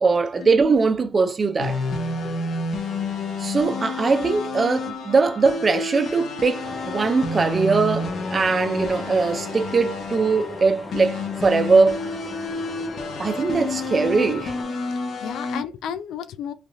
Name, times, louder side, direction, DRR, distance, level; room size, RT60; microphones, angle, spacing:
voice 1, 0.0-1.8 3.4-12.0 13.2-14.5, right 4 dB, 35° right, 0.4 m, -21 dB
sound 1, 1.6-15.6, left 3 dB, 60° left, 0.7 m, -30 dB
sound 2, 6.6-14.6, left 1 dB, 10° left, 0.6 m, -40 dB
voice 2, 14.9-16.5, left 8 dB, 80° left, 0.3 m, -33 dB
3.2 x 2.3 x 2.5 m
cardioid pair, 90°, 0 cm